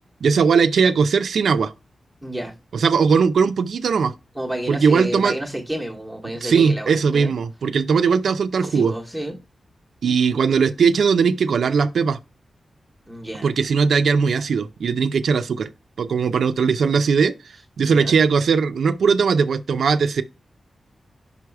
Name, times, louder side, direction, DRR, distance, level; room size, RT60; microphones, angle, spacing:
voice 1, 0.2-1.7 2.7-4.1 4.7-5.4 6.4-8.9 10.0-12.2 13.4-15.7 16.0-17.3 17.8-20.2, right 5 dB, 90° right, 0.4 m, -19 dB
voice 2, 2.2-2.5 4.4-7.3 8.6-9.4 13.1-13.5 17.8-18.1, right 1 dB, ahead, 0.9 m, -30 dB
5.5 x 4.7 x 4.5 m
wide cardioid pair, 180°, 0 cm